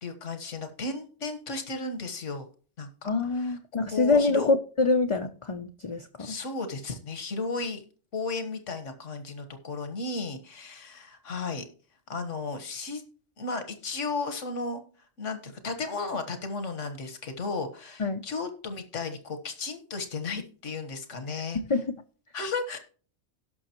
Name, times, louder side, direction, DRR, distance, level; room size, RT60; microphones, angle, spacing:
voice 1, 0.0-2.5 2.8-3.6 3.9-4.5 6.2-7.8 8.1-11.6 12.1-13.0 13.4-14.8 15.2-21.6 22.3-22.8, left 3 dB, 85° left, 9 dB, 1.7 m, -34 dB
voice 2, 3.1-6.4 18.0-18.2 21.7-21.8, left 3 dB, 35° left, 5 dB, 0.5 m, -25 dB
17.5 x 6.2 x 3.0 m, 0.40 s
omnidirectional pair, 1.2 m